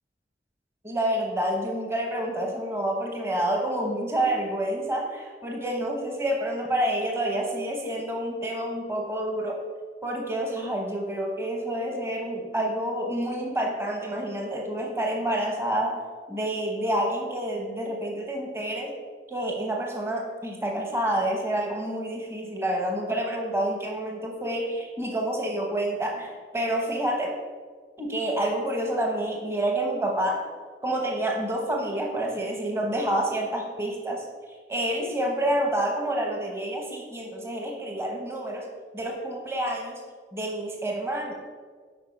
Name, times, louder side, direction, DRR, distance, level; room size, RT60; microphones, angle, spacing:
voice 1, 0.8-9.6 10.0-16.0 16.3-19.0 19.3-27.4 28.0-30.5 30.8-38.7 38.9-40.0 40.3-41.4, right 1 dB, 15° right, 1 dB, 1.0 m, -28 dB
8.7 x 4.9 x 5.4 m, 1.5 s
head